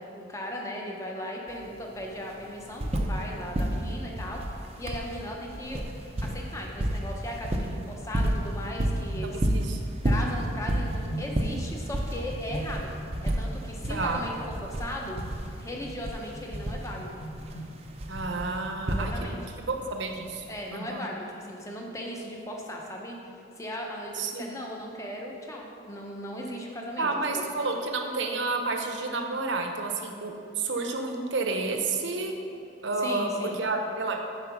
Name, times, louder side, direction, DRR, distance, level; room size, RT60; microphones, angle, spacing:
voice 1, 0.0-4.4 4.8-5.8 6.2-9.4 9.8-12.9 13.2-15.2 15.6-17.2 18.9-19.4 20.5-23.2 23.6-27.4 33.0-33.6, equal, 15° left, -1 dB, 0.8 m, -37 dB
sound 1, 1.5-1.6 1.8-3.3 3.5-19.5 20.6-20.7, right 1 dB, 30° right, 0.5 m, -31 dB
sound 2, 9.1-9.8 10.1-11.8 12.3-18.4, equal, 75° left, 0.9 m, -42 dB
voice 2, 9.2-9.8 13.9-14.2 18.1-19.4 19.7-20.5 20.7-21.1 24.1-24.6 27.0-32.3 32.8-33.3 33.6-34.2, right 3 dB, 60° right, 3 dB, 0.8 m, -30 dB
7.5 x 4.8 x 5.9 m, 2.7 s
head